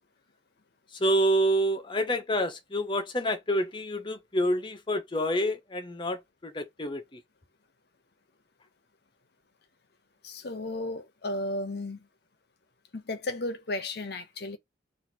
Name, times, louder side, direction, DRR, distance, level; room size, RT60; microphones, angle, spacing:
voice 1, 0.9-7.2, equal, 25° left, 0.8 m, -28 dB
voice 2, 10.2-12.1 12.9-14.6, left 2 dB, 55° left, 0.8 m, -34 dB
3.6 x 2.7 x 4.3 m
head